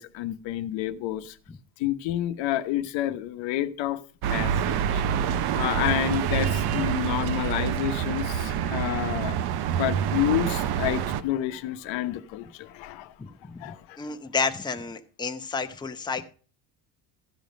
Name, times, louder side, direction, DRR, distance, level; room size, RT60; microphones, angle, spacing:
voice 1, 0.0-1.4 1.8-4.0 4.3-9.4 9.8-13.1 13.6-14.2, left 12 dB, 75° left, 1.0 m, -29 dB
sound 1, 4.2-11.2, right 9 dB, 55° right, 0.9 m, -27 dB
voice 2, 13.2-13.6 14.0-16.2, left 4 dB, 10° left, 0.8 m, -30 dB
14.5 x 5.2 x 6.5 m
cardioid pair, 135°, 45 cm